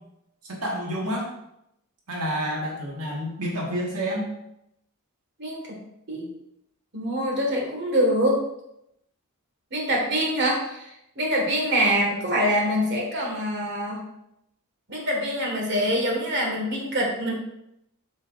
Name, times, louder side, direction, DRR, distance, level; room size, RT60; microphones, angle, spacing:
voice 1, 0.4-1.3 2.1-4.3, equal, 85° right, -2 dB, 1.6 m, -29 dB
voice 2, 5.4-5.8 6.1-6.3 6.9-8.4 9.7-14.0 14.9-17.3, equal, 50° right, -1 dB, 1.7 m, -25 dB
7.3 x 6.8 x 2.5 m, 0.81 s
head